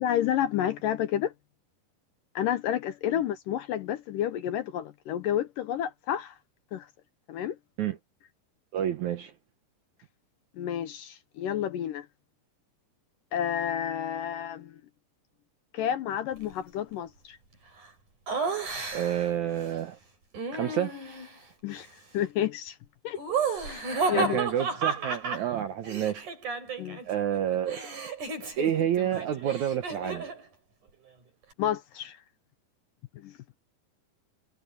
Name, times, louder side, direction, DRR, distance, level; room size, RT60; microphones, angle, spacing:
voice 1, 0.0-1.3 2.4-6.4 6.7-6.9 7.3-7.6 10.6-12.1 13.3-14.7 15.7-17.4 21.6-21.9 22.1-22.8 23.0-23.2 23.6-24.4 26.8-27.0 31.6-32.2 33.2-33.3, left 10 dB, 75° left, 2.2 m, -30 dB
voice 2, 8.7-9.3 18.9-20.0 20.5-21.0 24.1-26.3 27.1-27.8 28.6-30.3, right 10 dB, 65° right, 2.0 m, -29 dB
Laughter, 18.3-19.3 20.3-21.4 23.2-27.1 27.3-30.4, right 4 dB, 50° right, 8.7 m, -32 dB
omnidirectional pair, 4.6 m